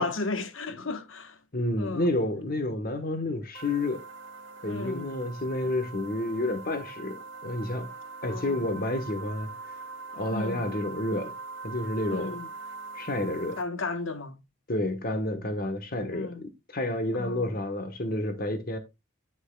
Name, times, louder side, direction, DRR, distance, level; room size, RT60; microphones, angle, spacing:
voice 1, 0.0-1.4 1.8-2.1 4.7-5.1 8.2-8.7 10.3-10.7 12.1-12.5 13.6-14.4 16.1-16.4 17.1-17.6, left 3 dB, 70° left, 1.2 m, -34 dB
voice 2, 1.5-4.0 4.6-7.9 8.2-9.5 10.1-11.3 11.6-12.4 12.9-13.6 14.7-16.3 16.7-18.8, left 1 dB, 45° left, 1.2 m, -30 dB
sound 1, 3.5-13.6, right 3 dB, 60° right, 1.9 m, -42 dB
8.4 x 8.1 x 2.3 m
head